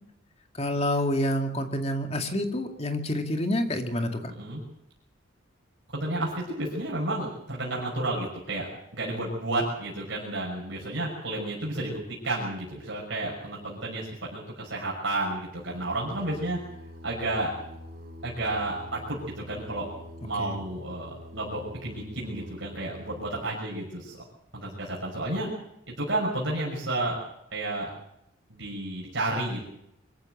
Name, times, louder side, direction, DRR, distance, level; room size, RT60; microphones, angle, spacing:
voice 1, 0.6-4.3 20.4-20.6, left 1 dB, 30° left, 5 dB, 2.1 m, -28 dB
voice 2, 4.3-4.6 5.9-16.6 17.0-17.5 18.2-19.9 20.2-24.2 24.5-25.5 25.9-27.2 27.5-27.9 28.5-29.6, right 2 dB, 65° right, -4 dB, 6.0 m, -31 dB
Singing, 15.5-23.4, equal, 45° right, 3.3 m, -45 dB
24.0 x 14.5 x 7.9 m, 0.82 s
head